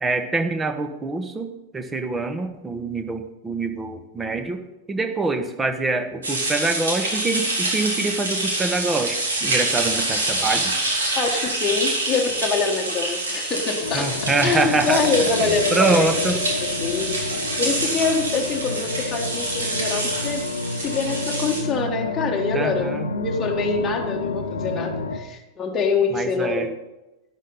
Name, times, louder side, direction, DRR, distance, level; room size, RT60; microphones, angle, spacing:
voice 1, 0.0-4.6 4.9-10.7 13.9-15.0 15.4-16.4 22.5-23.1 26.1-26.7, right 3 dB, 15° right, 7 dB, 1.2 m, -25 dB
sound 1, 6.2-21.6, right 2 dB, 70° right, 3.0 m, -26 dB
voice 2, 11.1-14.1 14.4-17.2 17.6-26.7, left 4 dB, 20° left, -1 dB, 1.4 m, -25 dB
sound 2, 13.8-25.2, left 3 dB, 70° left, 0.9 m, -29 dB
12.0 x 10.5 x 4.0 m, 1.0 s
figure-of-eight pair, 90°, 0 cm